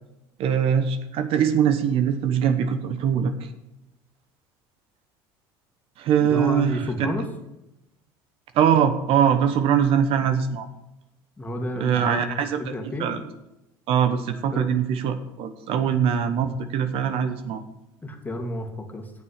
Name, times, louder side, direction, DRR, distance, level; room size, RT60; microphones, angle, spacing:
voice 1, 0.4-3.5 6.0-7.1 8.5-10.7 11.8-12.7 13.0-13.2 13.9-17.6, right 8 dB, 60° right, 9 dB, 1.1 m, -22 dB
voice 2, 6.2-7.3 11.4-12.2 12.6-13.1 14.5-14.7 15.9-16.0 18.0-19.1, left 1 dB, 15° left, 4 dB, 2.1 m, -31 dB
8.5 x 7.0 x 8.4 m, 0.90 s
supercardioid pair, 90°, 11 cm